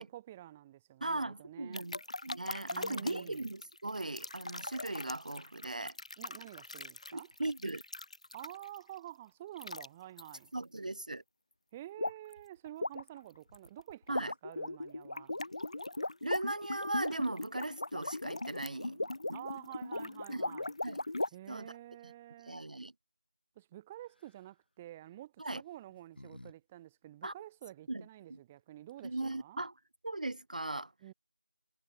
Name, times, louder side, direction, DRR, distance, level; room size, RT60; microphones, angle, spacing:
voice 1, 0.0-1.9 2.7-3.5 6.2-7.3 8.3-10.5 11.7-15.3 19.3-20.7 21.3-22.6 23.6-29.6 31.0-31.1, right 13 dB, 5° right, 1.8 m, -49 dB
voice 2, 1.0-6.0 7.1-7.8 10.5-11.2 14.1-14.3 16.2-19.1 20.3-20.4 20.8-21.0 21.5-21.7 22.4-22.9 25.4-25.6 27.2-27.3 27.9-28.0 28.3-28.4 29.0-29.8 30.0-30.9, right 2 dB, 55° right, 0.4 m, -38 dB
sound 1, 1.7-8.8 9.6-9.9 10.2-10.4 12.0-12.3 12.7-21.3, left 2 dB, 45° left, 0.6 m, -39 dB
sound 2, 24.1-24.5 25.5-26.6 26.8-26.9 28.6-28.7 28.9-29.3, left 1 dB, 85° left, 2.4 m, -55 dB
figure-of-eight pair, 175°, 5 cm